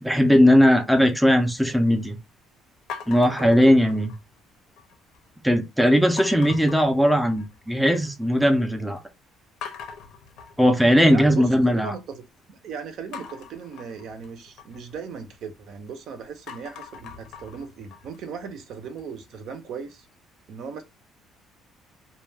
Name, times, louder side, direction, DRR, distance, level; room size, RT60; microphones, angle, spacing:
voice 1, 0.0-2.2 3.1-4.1 5.4-9.0 10.6-11.9, equal, ahead, 0.4 m, -18 dB
sound 1, 2.9-4.4 4.8-5.3 6.2-7.7 8.0-8.6 9.0-9.1 9.6-11.7 13.1-15.9 16.3-19.2, left 7 dB, 70° left, 0.6 m, -42 dB
voice 2, 3.4-3.8 11.1-12.2 12.5-20.1 20.5-20.8, right 6 dB, 60° right, 0.6 m, -37 dB
2.3 x 2.1 x 3.3 m
cardioid pair, 135°, 0 cm